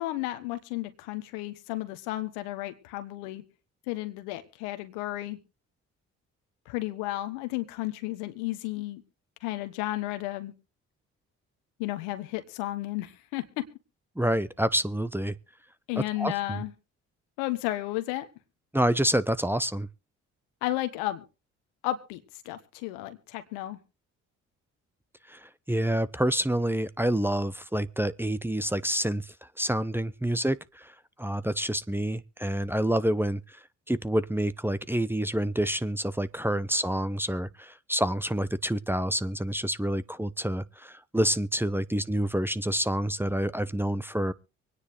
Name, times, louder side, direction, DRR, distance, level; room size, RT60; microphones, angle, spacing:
voice 1, 0.0-3.4 3.9-5.4 6.7-9.0 9.4-10.5 11.8-13.4 15.9-16.7 17.4-18.3 20.6-21.2 21.8-22.2 22.4-23.8, left 16 dB, 85° left, 1.4 m, -33 dB
voice 2, 14.2-15.3 16.2-16.6 18.7-19.9 25.3-33.6 33.9-44.3, right 1 dB, 5° right, 0.9 m, -28 dB
24.5 x 9.8 x 3.3 m
hypercardioid pair, 45°, 36 cm